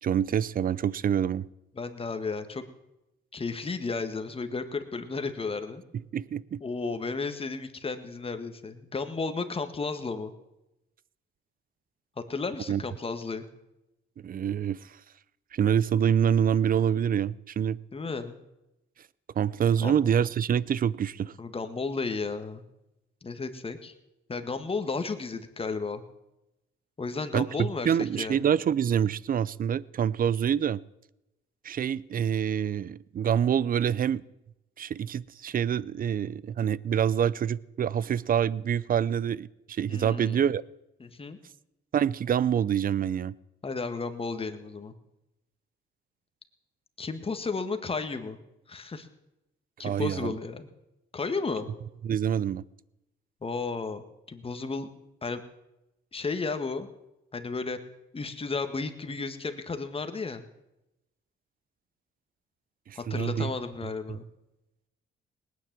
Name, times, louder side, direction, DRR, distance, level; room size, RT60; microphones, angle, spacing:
voice 1, 0.0-1.5 6.1-6.6 12.7-12.8 14.2-14.9 15.5-17.8 19.4-21.3 27.3-30.8 31.6-34.2 34.8-40.6 41.9-43.3 49.8-50.3 52.0-52.6 62.9-63.5 64.1-64.2, right 8 dB, 45° right, 0.6 m, -26 dB
voice 2, 1.8-2.6 3.3-5.8 6.6-10.3 12.3-13.5 17.9-18.4 19.8-19.9 21.4-22.6 23.2-23.9 24.3-26.0 27.0-28.4 39.9-40.4 41.0-41.4 43.6-44.9 47.0-48.4 48.7-49.1 49.8-50.7 51.1-51.7 53.4-54.9 55.2-55.4 56.1-56.9 57.3-57.8 58.1-60.4 63.0-64.3, left 4 dB, 30° left, 1.7 m, -33 dB
19.0 x 9.7 x 7.5 m
cardioid pair, 90°, 20 cm